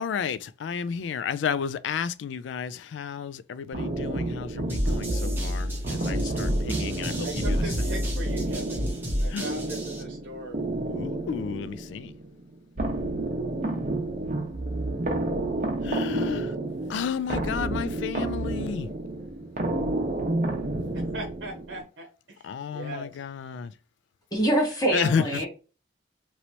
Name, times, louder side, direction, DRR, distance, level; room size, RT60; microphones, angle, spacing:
voice 1, 0.0-7.6 9.3-9.5 10.9-12.1 15.8-16.5 16.9-18.9 22.4-23.7 24.9-25.4, left 7 dB, 75° left, 0.3 m, -32 dB
sound 1, 3.7-21.8, right 2 dB, 45° right, 0.9 m, -31 dB
sound 2, 4.7-10.0, equal, 10° right, 0.8 m, -29 dB
voice 2, 7.2-8.9 9.2-10.6 20.9-23.2, right 2 dB, 90° right, 0.8 m, -39 dB
voice 3, 24.3-25.5, right 1 dB, 20° left, 1.4 m, -24 dB
3.0 x 2.9 x 2.7 m
head